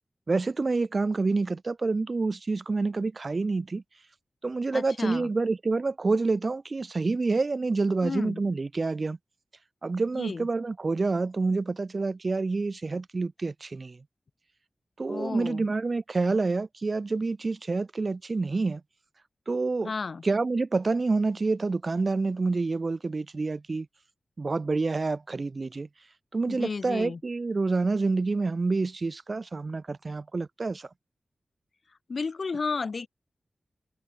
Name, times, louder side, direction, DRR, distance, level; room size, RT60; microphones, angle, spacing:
voice 1, 0.3-3.8 4.4-9.2 9.8-14.0 15.0-18.8 19.5-19.9 20.2-23.9 24.4-25.9 26.3-30.9, right 3 dB, 45° right, 3.0 m, -28 dB
voice 2, 4.7-5.3 8.0-8.4 10.1-10.5 15.1-15.7 19.8-20.2 26.5-27.2 32.1-33.1, left 4 dB, 60° left, 2.8 m, -32 dB
wide cardioid pair, 85°, 0 cm